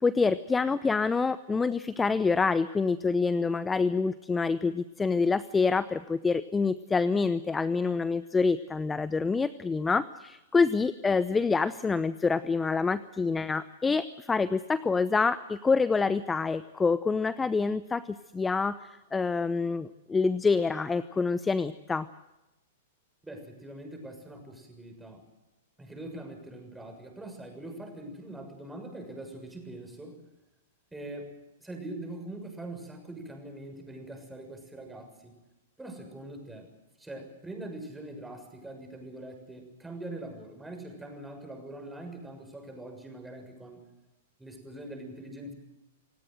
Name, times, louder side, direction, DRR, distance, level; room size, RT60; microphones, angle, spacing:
voice 1, 0.0-22.1, left 4 dB, 15° left, 16 dB, 0.7 m, -27 dB
voice 2, 23.2-25.2 25.8-30.2 30.9-31.3 31.6-35.3 35.8-36.7 37.0-43.8 44.4-45.5, right 1 dB, 5° right, 4 dB, 6.8 m, -43 dB
28.0 x 17.0 x 7.9 m, 1.0 s
hypercardioid pair, 110°, 0 cm